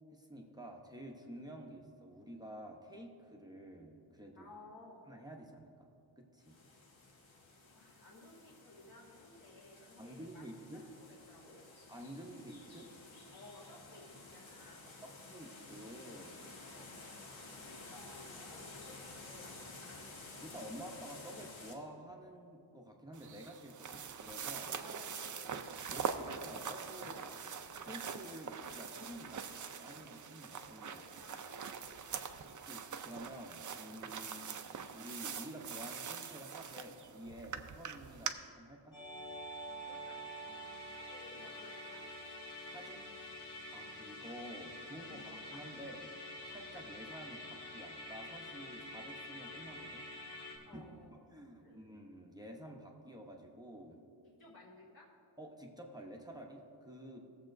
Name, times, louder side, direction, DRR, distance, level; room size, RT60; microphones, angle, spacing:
voice 1, 0.1-4.5 5.1-5.7 6.2-6.6 10.0-10.9 11.9-12.9 15.0-16.4 20.4-24.8 25.9-27.3 27.8-31.0 31.3-31.4 32.7-34.6 34.9-39.0 42.6-43.3 43.7-46.1 46.4-50.1 50.6-50.8 51.1-54.0 55.4-57.2, equal, 10° right, 0 dB, 0.7 m, -50 dB
voice 2, 4.3-5.0 7.7-10.4 10.7-11.6 13.3-14.9 16.7-16.9 17.4-20.0 24.8-25.5 25.9-26.0 26.9-27.4 30.8-32.5 39.8-42.0 45.0-45.6 50.7-51.2 51.6-51.9 54.4-55.1, left 2 dB, 45° left, -7 dB, 1.6 m, -57 dB
sound 1, 6.4-21.7, left 3 dB, 85° left, 1.4 m, -53 dB
sound 2, 23.1-38.3, right 6 dB, 45° right, 0.4 m, -43 dB
Musical instrument, 38.9-50.6, left 1 dB, 65° left, 2.5 m, -47 dB
19.0 x 7.4 x 2.6 m, 2.5 s
wide cardioid pair, 165°, 46 cm